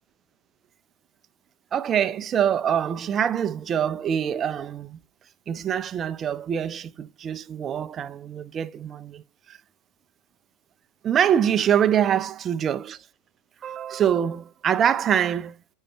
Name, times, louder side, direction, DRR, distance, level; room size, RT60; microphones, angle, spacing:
voice 1, 1.7-5.0 5.5-9.2 9.5-9.6 11.0-13.0 13.6-15.5, right 9 dB, 30° right, 0.5 m, -24 dB
15.0 x 5.5 x 2.2 m
figure-of-eight pair, 90°, 0 cm